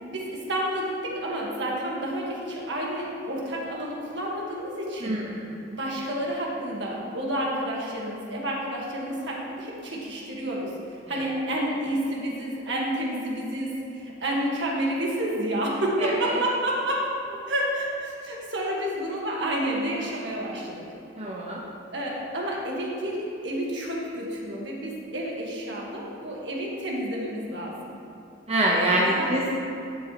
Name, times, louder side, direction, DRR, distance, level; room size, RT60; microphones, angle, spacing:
voice 1, 0.0-5.2 5.7-20.8 21.9-28.0 28.7-29.3, right 1 dB, 65° right, -3 dB, 1.7 m, -30 dB
voice 2, 5.0-5.4 11.1-11.2 16.0-16.1 21.2-21.6 28.5-29.5, right 1 dB, 30° right, -4 dB, 0.9 m, -25 dB
12.0 x 7.7 x 3.1 m, 2.8 s
head